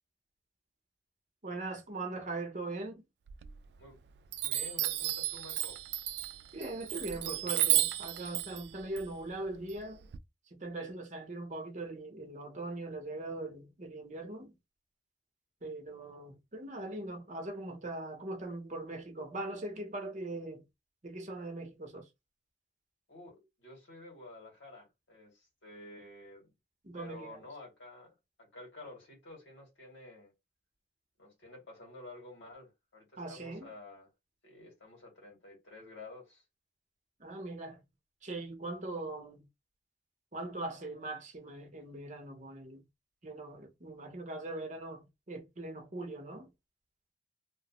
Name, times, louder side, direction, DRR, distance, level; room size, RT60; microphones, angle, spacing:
voice 1, 1.4-3.1 6.5-10.1 10.6-14.5 15.6-20.6 21.0-22.1 26.8-27.4 33.2-33.7 37.2-37.8 38.2-39.4 40.3-42.9 43.2-46.5, right 2 dB, 40° right, 0.7 m, -41 dB
Chime, 3.3-3.9 4.3-10.2, right 14 dB, 60° right, 0.3 m, -33 dB
voice 2, 4.4-5.8 23.1-26.5 27.0-28.1 28.4-30.3 31.2-34.1 34.4-36.4, left 2 dB, 80° left, 1.9 m, -51 dB
3.0 x 2.1 x 2.8 m
head